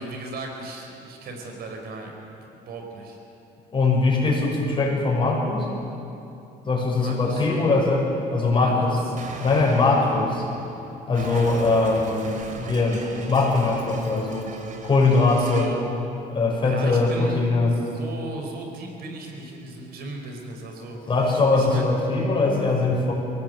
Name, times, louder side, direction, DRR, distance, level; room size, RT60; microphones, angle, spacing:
voice 1, 0.0-2.1 2.5-3.2 7.0-7.5 8.5-9.2 15.3-15.8 16.6-21.9, right 3 dB, 65° right, 3 dB, 4.8 m, -37 dB
voice 2, 3.7-5.7 6.6-9.0 9.4-10.4 11.1-14.5 14.8-15.7 16.3-17.7 21.1-23.1, left 3 dB, 30° left, -2 dB, 6.5 m, -21 dB
Explosion, 9.2-15.8, right 3 dB, 50° right, 2.8 m, -39 dB
23.5 x 18.0 x 7.9 m, 2.9 s
cardioid pair, 110°, 17 cm